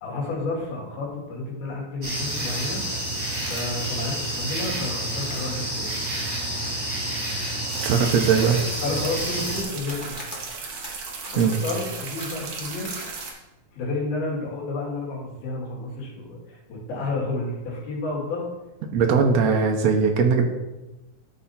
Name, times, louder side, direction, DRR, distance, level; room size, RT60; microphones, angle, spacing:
voice 1, 0.0-2.8 3.4-6.0 8.8-10.2 11.2-12.9 13.7-18.5, left 2 dB, 85° left, -3 dB, 4.3 m, -31 dB
sound 1, 2.0-9.6, right 1 dB, 30° right, 4.3 m, -29 dB
sound 2, 3.4-5.7 6.3-6.7 6.9-7.0 7.6-7.7 8.3-9.1 9.8-12.3 12.8-13.0, left 2 dB, 60° left, 0.5 m, -42 dB
sound 3, 7.7-13.3, right 4 dB, 60° right, 1.9 m, -36 dB
voice 2, 7.8-8.6 11.4-11.5 18.9-20.5, right 5 dB, 75° right, 3 dB, 1.6 m, -20 dB
13.5 x 4.9 x 4.2 m, 1.0 s
omnidirectional pair, 4.2 m